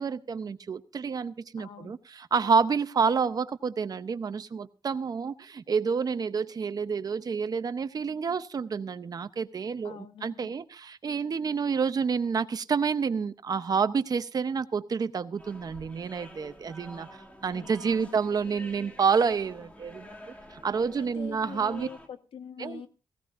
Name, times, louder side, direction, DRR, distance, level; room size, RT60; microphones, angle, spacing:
voice 1, 0.0-17.1 17.4-20.2 20.5-21.9 22.6-22.8, right 5 dB, 45° right, 11 dB, 0.7 m, -29 dB
voice 2, 1.6-2.0 9.8-10.5 17.5-18.2 21.0-22.9, left 7 dB, 90° left, 8 dB, 1.2 m, -45 dB
sound 1, 15.4-22.1, equal, 15° left, 2.0 m, -49 dB
18.0 x 15.5 x 2.5 m, 0.33 s
wide cardioid pair, 125°, 9 cm